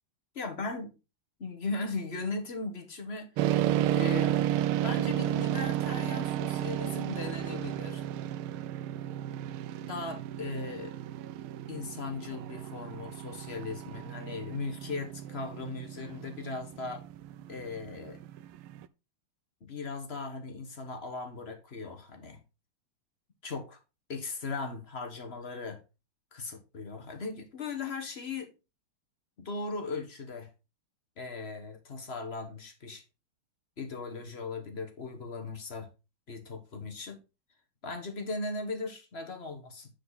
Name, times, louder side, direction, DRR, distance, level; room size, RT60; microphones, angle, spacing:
voice 1, 0.3-0.9 1.4-3.7 3.9-4.3 4.6-8.1 9.9-10.9 11.7-17.0 17.5-18.2 19.6-22.4 23.4-23.8 24.1-25.8 26.3-28.5 29.4-30.5 31.2-33.0 33.8-35.9 36.3-37.2 37.8-39.9, left 3 dB, 35° left, 1.3 m, -38 dB
sound 1, 3.4-18.9, right 12 dB, 80° right, 1.4 m, -33 dB
9.4 x 4.8 x 4.0 m
omnidirectional pair, 2.4 m